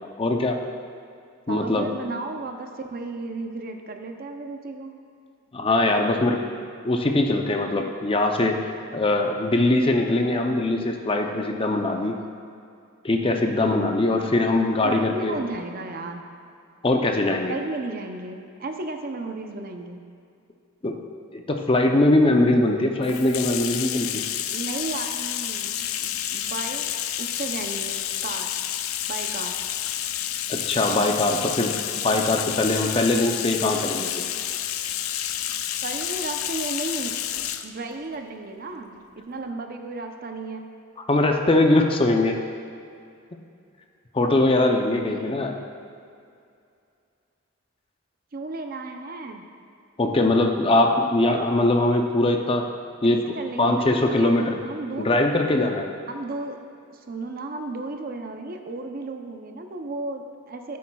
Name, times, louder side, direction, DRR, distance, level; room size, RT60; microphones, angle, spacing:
voice 1, 0.2-0.6 1.5-1.9 5.5-6.4 6.8-12.2 13.0-15.4 16.8-17.5 20.8-20.9 21.3-24.2 30.5-31.7 32.0-34.1 41.1-42.4 43.3-43.4 44.1-45.6 50.0-52.7 53.0-53.3 53.6-54.6 55.0-55.9, left 2 dB, 25° left, 3 dB, 0.5 m, -21 dB
voice 2, 1.5-4.9 11.8-12.2 14.8-16.2 17.5-20.1 24.5-26.9 27.2-28.5 29.1-29.6 35.8-37.2 37.6-40.7 44.9-45.3 48.3-49.5 53.0-55.5 56.1-56.6 56.9-60.8, right 2 dB, 45° right, 5 dB, 0.6 m, -34 dB
Bathtub (filling or washing), 23.0-37.7, left 11 dB, 90° left, 0.4 m, -29 dB
14.0 x 8.5 x 2.3 m, 2.4 s
head